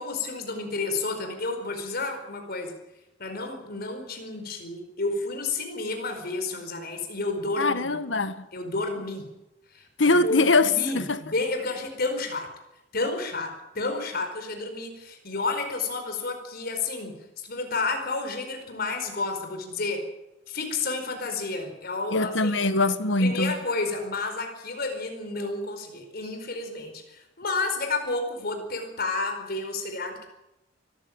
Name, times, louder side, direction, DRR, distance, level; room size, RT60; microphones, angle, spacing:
voice 1, 0.0-2.7 3.2-7.9 8.5-9.3 9.7-12.5 12.9-20.0 20.5-22.5 23.2-30.3, left 3 dB, 55° left, 4.8 m, -31 dB
voice 2, 7.6-8.5 10.0-11.2 22.1-23.5, left 3 dB, 75° left, 1.5 m, -22 dB
24.5 x 14.5 x 8.8 m
head